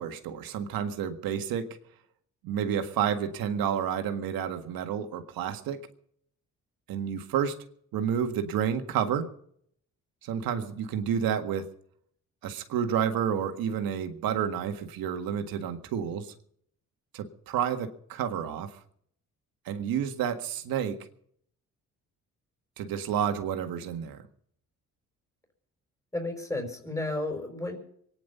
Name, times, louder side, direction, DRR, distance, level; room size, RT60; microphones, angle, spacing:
voice 1, 0.0-1.8 2.4-5.9 6.9-7.6 7.9-9.3 10.2-11.7 12.4-16.3 17.1-18.7 19.7-21.1 22.8-24.2, right 8 dB, 90° right, 6 dB, 1.8 m, -30 dB
voice 2, 26.1-27.8, left 2 dB, 10° left, 3 dB, 4.9 m, -32 dB
23.5 x 10.0 x 5.6 m, 0.65 s
cardioid pair, 65°, 34 cm